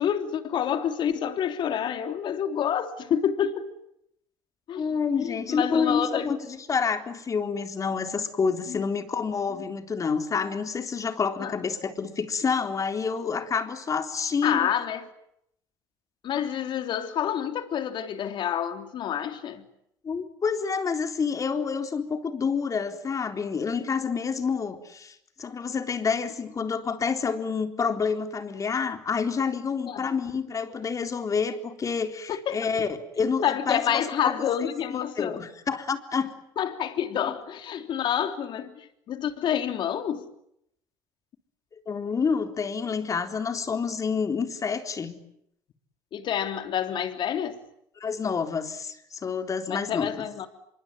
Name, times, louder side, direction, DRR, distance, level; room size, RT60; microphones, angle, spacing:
voice 1, 0.0-3.7 4.7-4.8 5.1-6.3 8.7-8.8 11.4-11.5 14.4-15.1 16.2-19.6 29.9-30.0 32.3-32.6 33.4-35.4 36.6-40.3 46.1-47.6 49.7-50.5, left 9 dB, 60° left, 3.3 m, -28 dB
voice 2, 4.8-14.7 20.0-34.4 35.2-36.4 37.2-37.4 41.9-45.2 48.0-50.1, left 5 dB, 35° left, 3.9 m, -28 dB
26.0 x 23.5 x 9.4 m
supercardioid pair, 80°, 9 cm